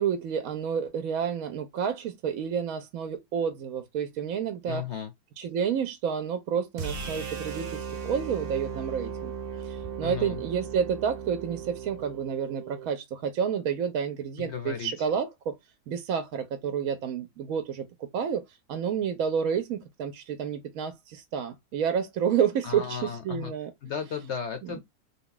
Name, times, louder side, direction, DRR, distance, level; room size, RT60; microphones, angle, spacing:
voice 1, 0.0-4.9 5.4-9.3 9.6-15.5 15.9-18.4 18.7-23.7 24.6-24.8, right 7 dB, 70° right, 0.9 m, -30 dB
voice 2, 4.7-5.1 10.0-10.4 14.4-15.1 22.6-23.5 23.8-24.8, left 7 dB, 60° left, 0.8 m, -35 dB
sound 1, 6.8-12.9, right 6 dB, 50° right, 0.8 m, -37 dB
3.6 x 2.3 x 3.7 m
omnidirectional pair, 1.7 m